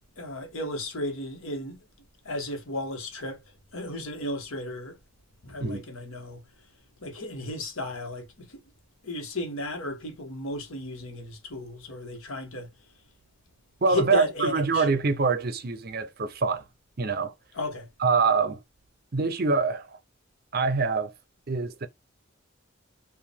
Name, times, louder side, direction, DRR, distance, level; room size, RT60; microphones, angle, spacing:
voice 1, 0.2-1.8 2.2-3.4 3.7-5.0 5.4-6.4 7.0-8.6 9.0-12.7 13.9-14.9 17.5-17.9, left 1 dB, 75° left, 1.4 m, -34 dB
voice 2, 13.8-16.6 17.0-17.3 18.0-18.6 19.1-20.0 20.5-21.1 21.5-21.9, right 4 dB, 45° right, 0.5 m, -25 dB
4.6 x 2.5 x 3.5 m
head